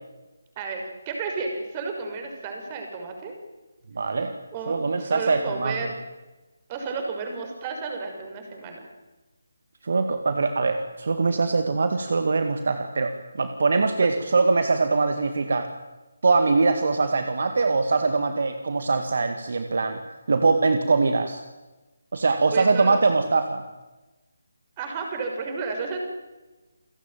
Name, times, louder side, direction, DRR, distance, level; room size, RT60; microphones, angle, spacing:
voice 1, 0.6-3.3 4.5-5.9 6.7-8.8 22.5-23.0 24.8-26.0, right 4 dB, 25° right, 3 dB, 5.9 m, -32 dB
voice 2, 3.9-4.4 4.7-5.9 9.8-15.7 16.2-20.0 20.3-21.4 22.1-23.6, right 3 dB, 55° right, 8 dB, 2.0 m, -22 dB
29.0 x 16.5 x 9.2 m, 1.1 s
figure-of-eight pair, 150°, 0 cm